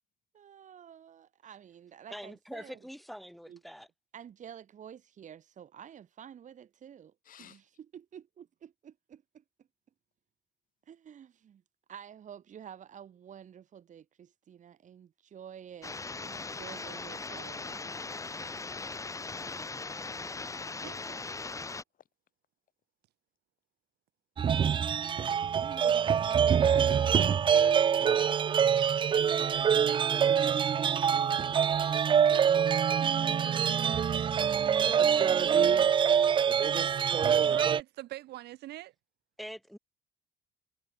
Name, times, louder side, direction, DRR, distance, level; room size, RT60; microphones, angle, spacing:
voice 1, 0.3-2.8 3.5-3.6 4.1-7.1 7.4-9.7 10.9-11.6 11.9-18.0 28.3-28.7 29.0-32.0 33.0-34.9, right 9 dB, 45° right, 3.0 m, -49 dB
voice 2, 2.1-3.9 39.4-39.8, equal, ahead, 5.1 m, -44 dB
voice 3, 7.2-7.6 26.3-29.0, left 10 dB, 55° left, 3.2 m, -52 dB
sound 1, 15.8-21.8, left 3 dB, 20° left, 1.8 m, -39 dB
voice 4, 20.8-21.3 37.3-38.9, right 16 dB, 75° right, 3.4 m, -43 dB
sound 2, 24.4-37.8, right 8 dB, 30° right, 0.4 m, -25 dB
cardioid pair, 110°, 17 cm